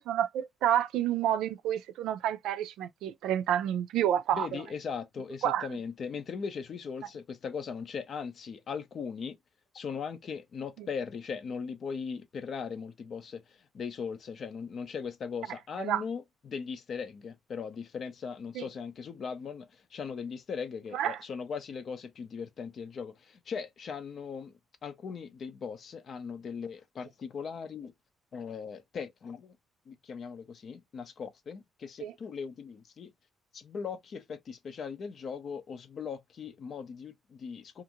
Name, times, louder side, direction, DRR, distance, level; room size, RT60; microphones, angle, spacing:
voice 1, 0.0-4.5 5.4-5.7 10.8-10.9 15.8-16.0 18.6-18.7 20.9-21.2 32.0-32.1, right 10 dB, 85° right, 0.3 m, -29 dB
voice 2, 4.3-9.4 9.7-13.4 13.7-24.5 24.8-27.9 28.3-29.5 29.9-33.1 33.5-37.8, left 6 dB, 55° left, 0.6 m, -39 dB
2.6 x 2.5 x 2.8 m
cardioid pair, 90°, 0 cm